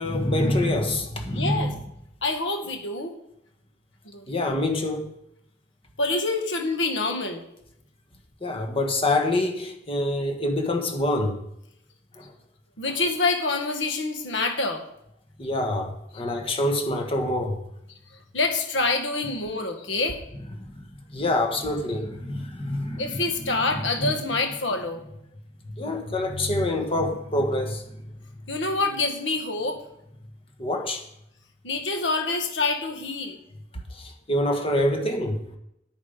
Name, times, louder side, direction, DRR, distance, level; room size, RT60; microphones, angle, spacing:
voice 1, 0.0-1.7 4.3-5.1 8.4-11.4 12.2-12.3 15.4-17.6 20.6-20.8 21.1-24.1 25.7-27.8 30.6-31.0 33.9-35.4, left 1 dB, 30° left, 1.5 m, -26 dB
voice 2, 1.3-1.7 2.2-3.1 4.1-4.3 6.0-7.4 12.8-14.8 18.3-20.2 23.0-25.0 28.5-29.8 31.6-33.4, left 3 dB, 85° left, 1.9 m, -26 dB
9.5 x 9.4 x 5.1 m
head